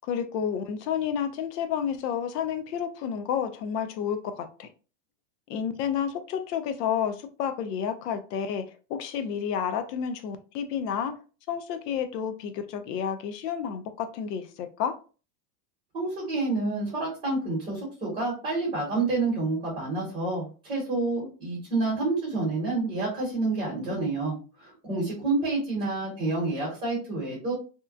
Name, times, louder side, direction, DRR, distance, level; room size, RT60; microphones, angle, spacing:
voice 1, 0.1-4.7 5.5-11.1 11.5-15.0, left 8 dB, 75° left, 8 dB, 0.6 m, -30 dB
voice 2, 15.9-27.5, right 3 dB, 15° right, -7 dB, 1.0 m, -28 dB
2.9 x 2.2 x 2.3 m, 0.35 s
supercardioid pair, 175°, 49 cm